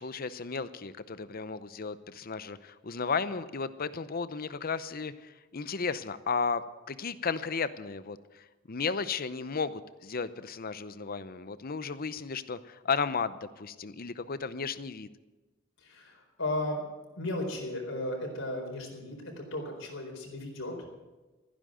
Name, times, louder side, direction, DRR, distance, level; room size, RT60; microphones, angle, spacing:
voice 1, 0.0-8.2 8.7-15.1, left 5 dB, 45° left, 14 dB, 0.7 m, -34 dB
voice 2, 15.8-16.8 17.2-20.7, left 1 dB, 75° left, 1 dB, 4.4 m, -35 dB
15.0 x 10.5 x 7.8 m, 1.2 s
head